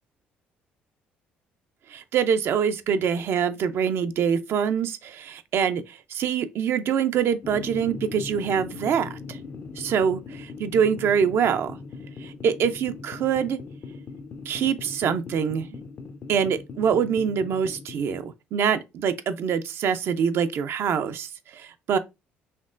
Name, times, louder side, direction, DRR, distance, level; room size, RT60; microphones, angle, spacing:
voice 1, 1.9-9.4 9.8-11.8 12.2-13.6 14.5-15.7 16.3-22.0, right 7 dB, 60° right, 0.4 m, -25 dB
sound 1, 7.4-18.2, left 4 dB, 45° left, 0.5 m, -40 dB
4.3 x 3.0 x 2.4 m
hypercardioid pair, 60°, 5 cm